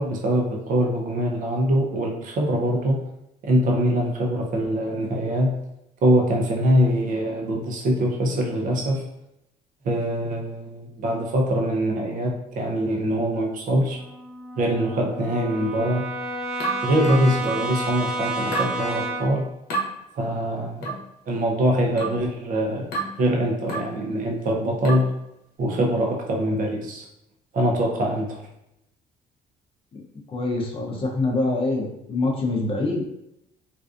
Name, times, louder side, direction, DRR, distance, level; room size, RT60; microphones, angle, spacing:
voice 1, 0.0-3.0 3.5-5.5 6.0-9.0 9.8-14.0 14.6-16.0 16.8-19.5 20.2-20.8 21.3-22.9 23.2-25.1 25.6-27.1 27.5-28.4, equal, 55° right, 0 dB, 0.6 m, -23 dB
Brass instrument, 13.9-19.4, right 2 dB, 5° right, 0.3 m, -31 dB
sound 1, 16.6-17.7 18.5-18.8 19.7-19.9 20.8-21.1 22.0-22.3 22.9-23.2 23.7-24.0 24.8-25.1, right 3 dB, 65° left, 0.8 m, -29 dB
voice 2, 30.3-33.0, left 2 dB, 35° left, -1 dB, 0.6 m, -25 dB
2.5 x 2.3 x 2.4 m, 0.83 s
cardioid pair, 110°, 17 cm